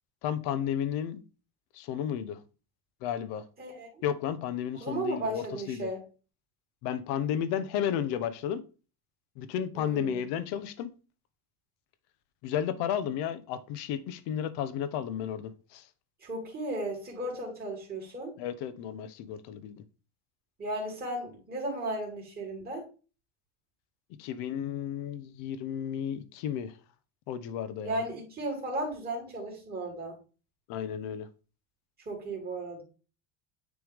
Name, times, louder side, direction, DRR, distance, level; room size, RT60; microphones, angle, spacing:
voice 1, 0.2-1.2 1.7-2.4 3.0-3.4 4.0-5.9 6.8-8.6 9.4-10.9 12.4-15.8 18.4-19.8 24.2-26.7 27.3-28.0 30.7-31.3, left 9 dB, 60° left, 0.9 m, -33 dB
voice 2, 3.6-3.9 4.7-6.0 9.7-10.2 16.2-18.3 20.6-22.8 27.8-30.2 32.1-32.8, right 2 dB, 20° right, 2.7 m, -35 dB
9.4 x 3.4 x 3.5 m
cardioid pair, 155°, 45 cm